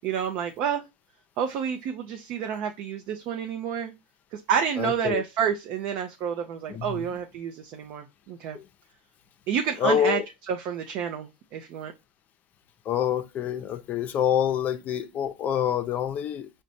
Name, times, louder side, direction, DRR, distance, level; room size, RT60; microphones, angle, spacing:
voice 1, 0.0-0.8 1.4-3.9 4.3-8.6 9.5-10.2 10.5-11.9, right 8 dB, 55° right, 0.5 m, -29 dB
voice 2, 4.8-5.2 6.7-7.1 8.5-8.7 9.8-10.3 12.8-16.5, left 9 dB, 40° left, 0.5 m, -27 dB
4.9 x 2.2 x 2.7 m
hypercardioid pair, 100°, 4 cm